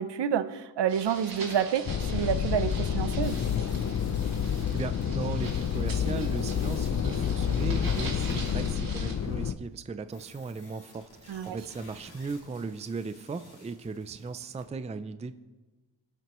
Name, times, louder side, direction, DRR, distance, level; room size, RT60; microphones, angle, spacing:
voice 1, 0.0-3.4 11.3-11.6, right 8 dB, 75° right, 12 dB, 0.7 m, -29 dB
sound 1, 0.9-9.1, right 4 dB, 55° right, 2.1 m, -43 dB
Sand and Wind Atmo, 1.8-9.5, left 8 dB, 40° left, 0.5 m, -29 dB
sound 2, 3.2-8.7 10.1-14.6, left 3 dB, 60° left, 2.9 m, -54 dB
voice 2, 4.7-15.4, right 4 dB, 15° right, 12 dB, 0.4 m, -37 dB
23.0 x 7.7 x 3.0 m, 1.2 s
wide cardioid pair, 140°, 43 cm